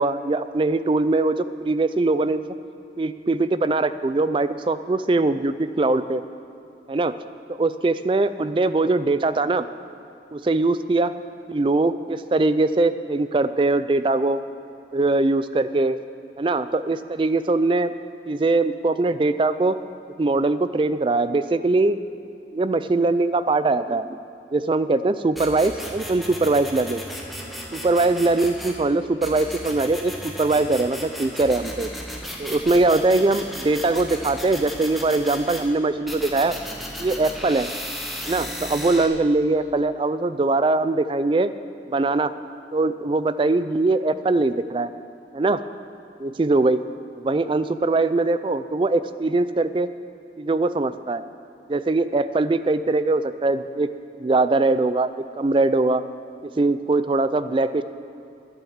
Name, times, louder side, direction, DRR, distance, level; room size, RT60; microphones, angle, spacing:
voice 1, 0.0-2.4 3.0-6.2 6.9-7.1 7.5-9.7 10.3-11.1 11.5-14.4 14.9-16.0 16.4-17.9 18.3-19.8 20.2-22.0 22.5-24.1 24.5-27.0 27.7-31.9 32.4-36.5 37.0-37.7 38.3-41.5 41.9-42.3 42.7-44.9 45.3-45.6 46.2-46.8 47.2-49.9 50.4-51.2 51.7-53.9 54.2-55.1 55.4-56.0 56.4-57.8, right 2 dB, 30° right, 13 dB, 0.3 m, -21 dB
sound 1, 25.4-28.8 29.2-35.7 36.1-39.1, equal, ahead, 1.2 m, -35 dB
11.5 x 9.2 x 7.2 m, 2.8 s
head